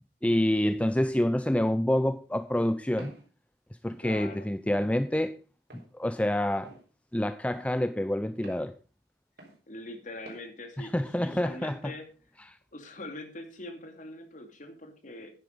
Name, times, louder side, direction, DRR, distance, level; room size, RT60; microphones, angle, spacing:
voice 1, 0.2-3.1 3.8-5.3 5.7-6.7 7.1-8.7 10.8-11.9, left 1 dB, 5° left, 0.5 m, -27 dB
Walk footsteps, 3.0-3.3 3.9-4.0 4.8-5.0 5.7-5.9 6.6-6.8 7.5-7.7 8.4-8.6 9.4-9.6 10.3-10.4, right 2 dB, 65° right, 4.5 m, -49 dB
voice 2, 4.0-4.5 9.7-12.1 12.7-15.3, left 2 dB, 45° left, 2.5 m, -43 dB
10.0 x 9.7 x 5.2 m
head